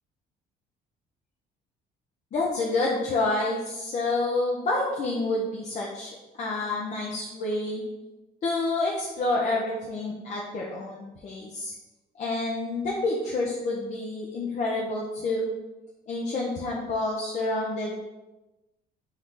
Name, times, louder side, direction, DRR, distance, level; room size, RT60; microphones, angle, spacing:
voice 1, 2.3-7.8 8.4-11.7 12.1-15.5 16.1-17.9, left 2 dB, 45° left, -3 dB, 0.8 m, -28 dB
3.9 x 2.8 x 4.8 m, 1.1 s
cardioid pair, 110°, 17 cm